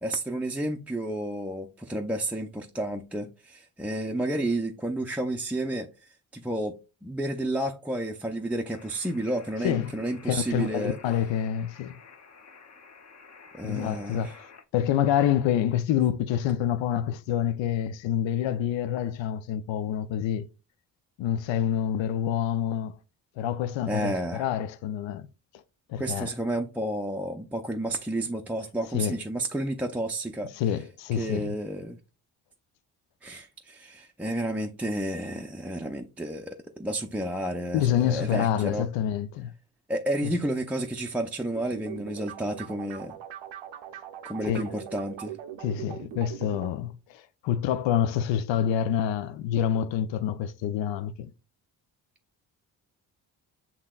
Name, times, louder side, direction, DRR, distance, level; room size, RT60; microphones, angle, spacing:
voice 1, 0.0-6.8 7.0-11.0 13.5-14.3 23.9-24.5 26.0-30.5 31.1-32.0 33.2-38.9 39.9-43.2 44.2-45.4, right 1 dB, 5° right, 0.4 m, -31 dB
sound 1, 8.7-14.6, left 5 dB, 35° left, 0.7 m, -51 dB
voice 2, 10.3-12.0 13.6-14.5 14.7-20.4 21.2-23.0 23.4-24.1 24.4-25.3 25.9-26.3 28.9-29.2 30.5-31.5 37.7-39.5 40.2-40.3 44.5-44.7 45.6-51.3, left 10 dB, 75° left, 0.5 m, -27 dB
sound 2, 41.5-46.7, right 10 dB, 80° right, 0.7 m, -41 dB
7.2 x 2.8 x 2.3 m
supercardioid pair, 55°, 46 cm